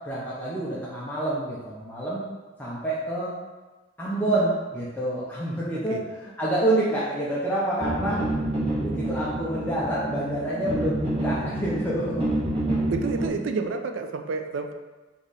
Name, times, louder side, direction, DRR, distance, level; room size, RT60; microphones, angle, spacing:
voice 1, 0.0-2.2 2.6-3.3 4.0-6.0 6.4-8.2 8.8-12.2, right 1 dB, 10° left, -8 dB, 0.6 m, -27 dB
sound 1, 7.8-13.3, right 1 dB, 30° right, 1.3 m, -28 dB
voice 2, 12.9-14.7, right 4 dB, 70° right, 5 dB, 0.4 m, -29 dB
3.9 x 3.1 x 3.9 m, 1.3 s
head